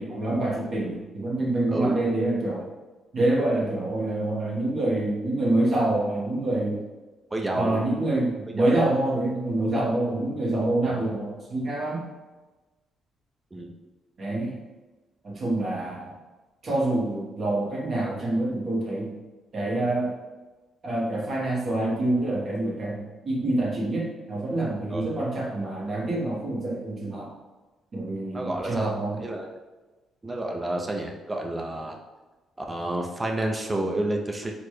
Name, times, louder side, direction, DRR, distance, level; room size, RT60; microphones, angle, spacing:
voice 1, 0.0-2.7 3.1-6.8 7.5-12.1 14.2-14.5 15.2-16.1 16.6-19.2 19.5-20.2 20.8-27.3 27.9-29.2, right 2 dB, 45° right, -3 dB, 1.1 m, -26 dB
voice 2, 7.3-7.8 8.6-8.7 10.9-11.0 13.5-13.7 24.9-25.1 28.3-29.5 30.2-32.0 32.6-34.5, right 1 dB, 20° right, 1 dB, 0.5 m, -30 dB
4.0 x 2.1 x 3.1 m, 1.2 s
cardioid pair, 90°, 0 cm